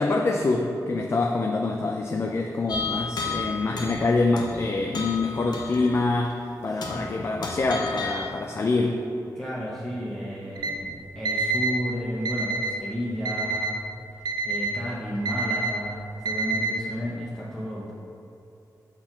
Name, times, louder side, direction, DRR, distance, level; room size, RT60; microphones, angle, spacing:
voice 1, 0.0-6.4 6.6-9.0, left 3 dB, 35° left, 2 dB, 0.4 m, -25 dB
sound 1, 2.7-4.1 4.4-4.6 4.9-6.0 6.3-6.4 6.8-7.1 7.4-8.3, left 4 dB, 75° left, 0.9 m, -32 dB
voice 2, 6.7-7.3 9.3-13.8 14.4-17.9, equal, 5° left, -8 dB, 0.9 m, -32 dB
Alarm, 10.6-10.7 11.2-11.7 12.2-12.7 13.2-13.7 14.2-14.7 15.2-15.7 16.2-16.7, right 4 dB, 80° right, 0.5 m, -27 dB
5.8 x 4.4 x 5.9 m, 2.7 s
wide cardioid pair, 130°, 7 cm